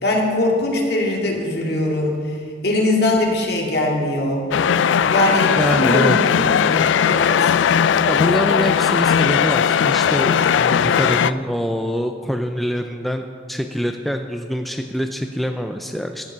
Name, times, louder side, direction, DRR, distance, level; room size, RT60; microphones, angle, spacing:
voice 1, 0.0-2.4 2.6-4.4 5.1-7.5, left 1 dB, 55° left, -1 dB, 2.2 m, -21 dB
sound 1, 4.5-11.3, left 8 dB, 80° left, 0.3 m, -18 dB
voice 2, 5.5-6.2 8.1-16.3, equal, ahead, 5 dB, 0.4 m, -24 dB
13.5 x 8.4 x 6.1 m, 2.1 s
head